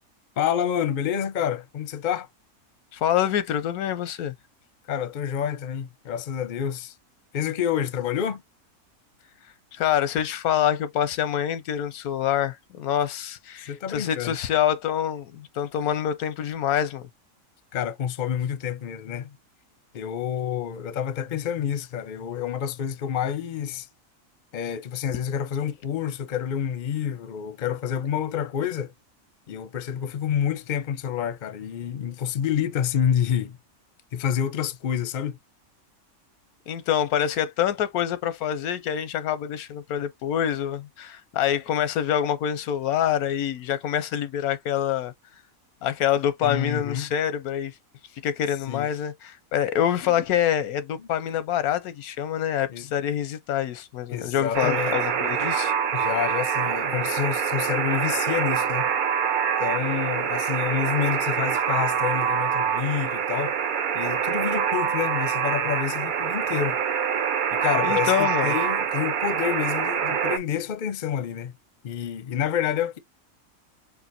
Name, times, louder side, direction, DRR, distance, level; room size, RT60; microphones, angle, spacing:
voice 1, 0.4-2.3 4.9-6.9 7.3-8.4 13.6-14.4 17.7-19.3 19.9-23.9 24.5-28.9 29.5-33.6 34.1-35.4 46.4-47.1 48.7-48.9 51.0-51.1 52.7-52.8 54.1-55.0 55.9-58.9 59.6-63.6 63.9-66.8 67.5-71.5 71.8-73.0, left 9 dB, 45° left, 0.6 m, -28 dB
voice 2, 2.9-4.3 9.7-17.1 36.7-45.1 45.8-47.7 48.2-55.7 67.8-68.5, left 10 dB, 90° left, 1.2 m, -26 dB
Alarm, 54.5-70.4, right 8 dB, 65° right, 0.5 m, -25 dB
5.0 x 3.4 x 2.5 m
omnidirectional pair, 1.5 m